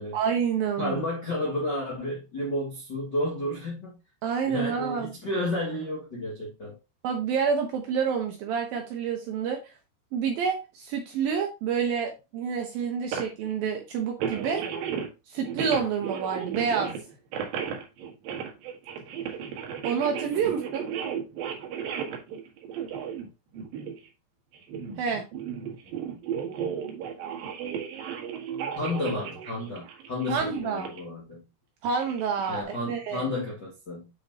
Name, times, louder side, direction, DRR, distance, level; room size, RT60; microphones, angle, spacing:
voice 1, 0.1-1.0 4.2-5.1 7.0-9.7 10.1-14.6 15.3-16.9 19.8-20.9 25.0-25.2 30.3-30.9 31.8-33.3, right 6 dB, 80° right, 2.1 m, -28 dB
voice 2, 0.8-4.0 4.4-6.8 20.4-20.5 28.7-31.5 32.5-34.1, left 1 dB, 50° left, 1.2 m, -31 dB
sound 1, 13.1-13.5 14.2-15.1 15.4-24.1 24.5-31.1 31.8-32.6, right 7 dB, 65° right, 2.6 m, -34 dB
7.9 x 6.2 x 2.8 m
omnidirectional pair, 5.6 m